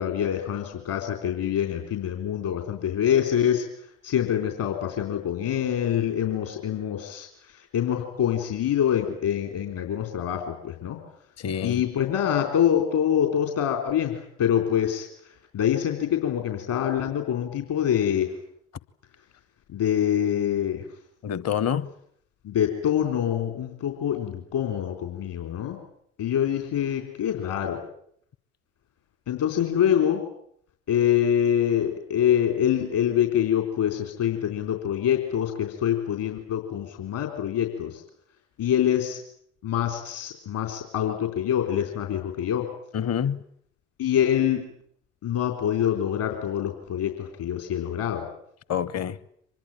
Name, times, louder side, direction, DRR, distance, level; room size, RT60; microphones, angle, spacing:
voice 1, 0.0-11.0 11.6-18.3 19.7-20.9 22.4-25.8 26.2-27.8 29.3-30.2 30.9-38.0 38.6-39.2 39.6-42.7 44.0-44.6 45.2-48.2, left 10 dB, 60° left, 3.8 m, -25 dB
voice 2, 11.4-11.8 21.2-21.9 42.9-43.4 48.7-49.2, left 9 dB, 45° left, 1.2 m, -27 dB
25.0 x 21.0 x 9.1 m
figure-of-eight pair, 50°, 36 cm